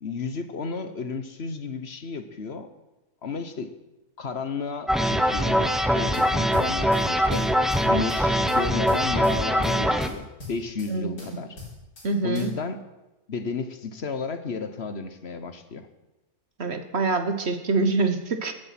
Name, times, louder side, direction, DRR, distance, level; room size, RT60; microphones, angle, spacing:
voice 1, 0.0-2.7 3.2-3.7 4.2-7.5 7.9-11.6 12.2-12.8 13.3-15.9, left 4 dB, 45° left, 10 dB, 1.3 m, -33 dB
sound 1, 4.9-10.1, equal, ahead, 0.4 m, -22 dB
sound 2, 6.1-7.0 7.3-8.2 8.5-9.7 10.0-10.9 11.2-12.1 12.3-12.5, left 2 dB, 75° left, 4.6 m, -41 dB
voice 2, 12.0-12.5 16.6-18.5, right 3 dB, 45° right, 8 dB, 1.4 m, -25 dB
16.0 x 11.5 x 6.0 m, 1.0 s
omnidirectional pair, 1.6 m